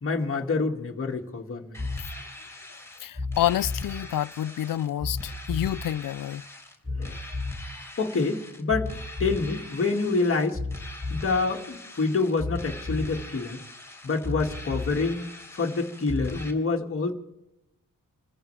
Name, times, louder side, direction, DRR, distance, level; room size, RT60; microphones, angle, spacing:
voice 1, 0.0-1.9 7.0-7.2 8.0-8.9 9.2-10.6 11.1-13.6 14.0-15.3 15.5-17.1, left 3 dB, 40° left, 2.1 m, -27 dB
sound 1, 1.7-16.5, left 2 dB, 10° left, 3.7 m, -36 dB
voice 2, 3.0-6.4, left 12 dB, 75° left, 0.5 m, -28 dB
28.5 x 14.5 x 3.4 m
wide cardioid pair, 160°, 33 cm